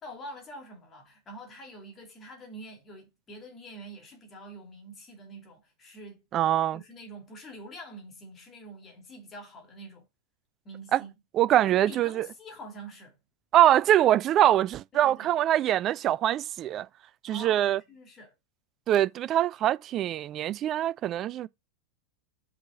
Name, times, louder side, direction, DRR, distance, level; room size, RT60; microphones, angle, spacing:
voice 1, 0.0-6.2 6.7-10.1 10.6-11.1 11.5-13.2 14.9-15.3 17.3-18.3, right 1 dB, 25° left, 2.5 m, -45 dB
voice 2, 6.3-6.8 10.9-11.0 11.3-12.3 13.5-16.9 17.2-17.8 18.9-21.5, right 12 dB, 30° right, 0.3 m, -23 dB
5.6 x 5.3 x 3.8 m
figure-of-eight pair, 90°, 0 cm